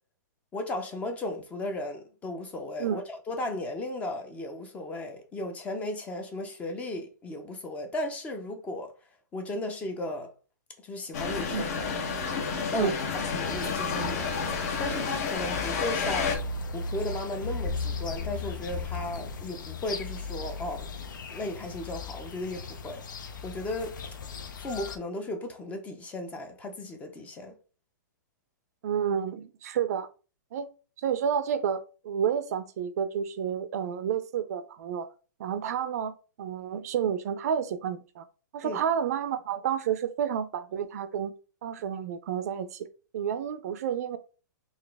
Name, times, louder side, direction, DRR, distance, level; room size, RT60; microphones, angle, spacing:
voice 1, 0.5-8.9 9.3-10.3 10.8-11.9 12.7-12.9 13.3-14.3 14.8-16.4 16.7-20.9 21.3-23.0 23.4-24.0 24.6-27.6 38.6-38.8, left 1 dB, 15° left, 0.5 m, -35 dB
sound 1, 11.1-16.4, left 5 dB, 50° left, 0.9 m, -30 dB
sound 2, 13.4-25.0, left 4 dB, 75° left, 0.6 m, -37 dB
voice 2, 28.8-30.1 30.5-30.7 31.0-35.1 35.4-38.2 38.5-41.3 41.6-42.9 43.1-44.2, right 8 dB, 55° right, 0.4 m, -30 dB
4.0 x 2.4 x 3.4 m
hypercardioid pair, 150°, 10 cm